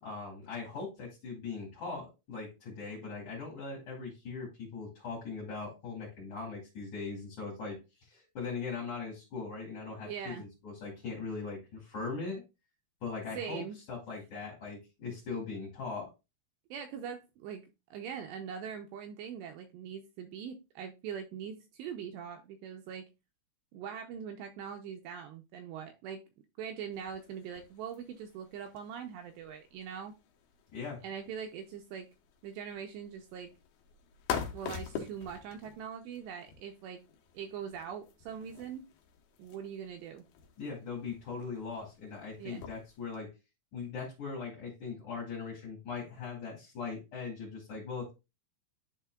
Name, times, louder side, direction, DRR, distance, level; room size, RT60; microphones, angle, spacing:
voice 1, 0.0-12.4 13.0-13.6 13.9-16.1 30.7-31.0 40.6-43.3 43.7-48.1, left 4 dB, 50° left, -4 dB, 3.0 m, -40 dB
voice 2, 10.1-10.4 13.3-13.8 16.7-17.7 17.9-23.1 23.7-26.2 26.6-30.1 31.0-32.1 32.4-33.5 34.5-37.0 37.3-38.8 39.4-40.2 42.4-42.6, right 7 dB, 80° right, 5 dB, 2.5 m, -42 dB
sound 1, 26.9-43.2, left 7 dB, 75° left, 2.4 m, -46 dB
11.0 x 4.3 x 2.3 m, 0.26 s
omnidirectional pair, 5.5 m